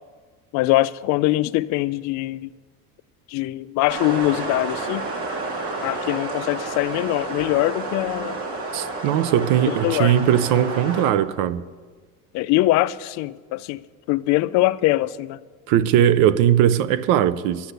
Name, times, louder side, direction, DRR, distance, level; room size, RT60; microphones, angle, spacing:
voice 1, 0.5-2.5 3.3-5.1 5.8-8.4 9.7-10.2 12.3-13.8 14.1-15.4, left 17 dB, 60° left, 0.5 m, -22 dB
sound 1, 3.9-11.1, right 3 dB, 45° right, 2.4 m, -30 dB
voice 2, 8.7-11.6 15.7-17.7, right 10 dB, 75° right, 0.7 m, -19 dB
11.5 x 8.1 x 8.1 m
cardioid pair, 140°, 32 cm